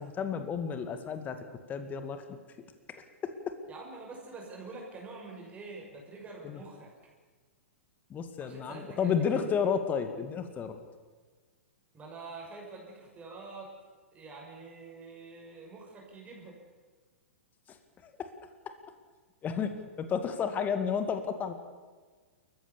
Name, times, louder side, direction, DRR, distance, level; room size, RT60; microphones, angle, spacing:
voice 1, 0.0-1.4 1.7-2.4 3.2-3.3 6.4-6.6 8.1-10.7 18.0-18.3 19.4-19.7 20.0-21.5, left 7 dB, 25° left, 8 dB, 2.2 m, -31 dB
voice 2, 3.7-6.9 8.4-9.5 11.9-13.7 14.1-16.6, right 3 dB, 20° right, -1 dB, 6.6 m, -46 dB
29.0 x 15.0 x 7.1 m, 1.4 s
figure-of-eight pair, 105°, 7 cm